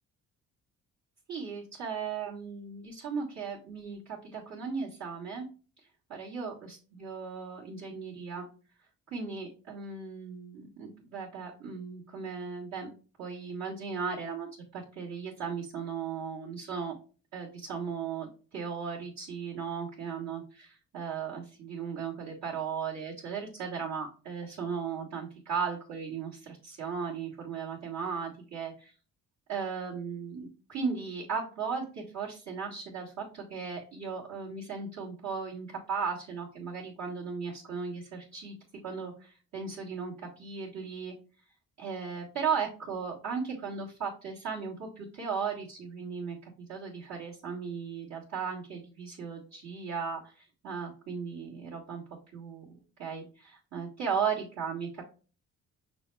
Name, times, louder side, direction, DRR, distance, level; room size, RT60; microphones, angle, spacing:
voice 1, 1.3-5.5 6.1-8.4 9.1-12.9 13.2-16.9 17.3-28.9 29.5-38.5 38.8-41.1 41.8-52.0 52.3-52.7 53.0-55.0, right 6 dB, 65° right, -8 dB, 1.6 m, -36 dB
6.0 x 2.1 x 3.3 m, 0.37 s
cardioid pair, 90°, 30 cm